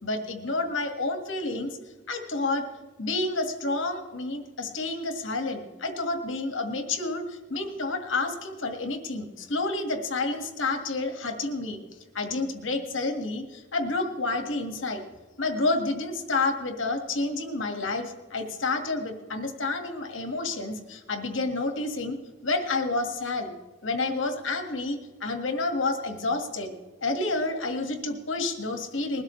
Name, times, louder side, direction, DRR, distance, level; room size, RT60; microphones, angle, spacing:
voice 1, 0.0-1.8 2.1-2.7 3.0-11.8 12.1-15.0 15.4-22.2 22.4-23.5 23.8-26.7 27.0-29.2, left 3 dB, 80° left, 5 dB, 1.8 m, -29 dB
21.0 x 13.0 x 3.2 m, 1.3 s
head